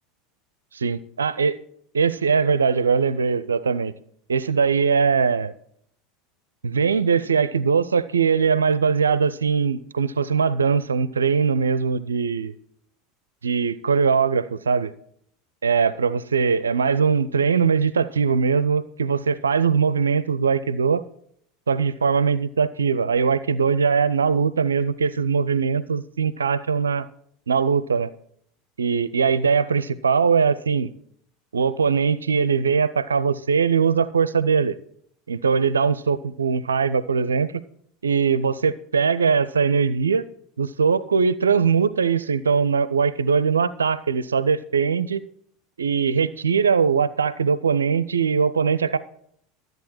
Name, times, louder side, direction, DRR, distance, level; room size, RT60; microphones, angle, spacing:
voice 1, 0.7-1.6 1.9-3.9 4.3-5.5 6.6-12.5 13.4-14.9 15.6-21.0 21.7-27.1 27.5-28.1 28.8-30.9 31.5-34.7 35.3-37.6 38.0-40.2 40.6-45.2 45.8-49.0, right 5 dB, 75° right, 0.5 m, -21 dB
13.5 x 8.0 x 4.3 m
figure-of-eight pair, 80°, 0 cm